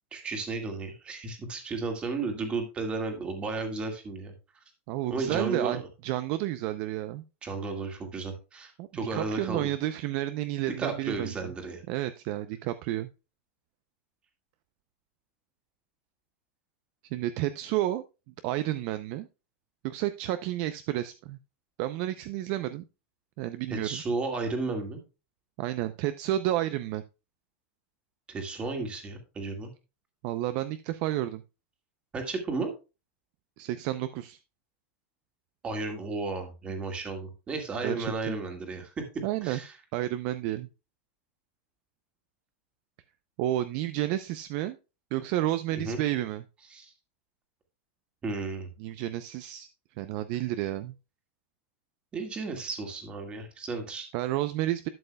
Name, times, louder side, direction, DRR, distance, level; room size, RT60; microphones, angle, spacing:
voice 1, 0.1-4.3 5.1-5.9 7.4-9.7 10.7-11.8 23.7-25.0 28.3-29.7 32.1-32.7 35.6-39.0 39.4-39.8 45.8-46.0 46.7-46.9 48.2-48.7 52.1-54.1, right 3 dB, 15° right, 4 dB, 1.8 m, -33 dB
voice 2, 4.9-7.2 8.8-11.5 11.9-13.1 17.1-18.0 18.4-19.3 19.8-21.4 21.8-22.8 23.4-24.0 25.6-27.0 30.2-31.4 33.6-34.4 37.8-38.4 39.2-39.6 39.9-40.7 43.4-44.8 45.1-46.4 48.8-49.7 50.0-50.9 54.1-54.9, right 14 dB, 40° right, 11 dB, 0.5 m, -31 dB
12.0 x 7.7 x 2.2 m, 0.29 s
supercardioid pair, 170°, 7 cm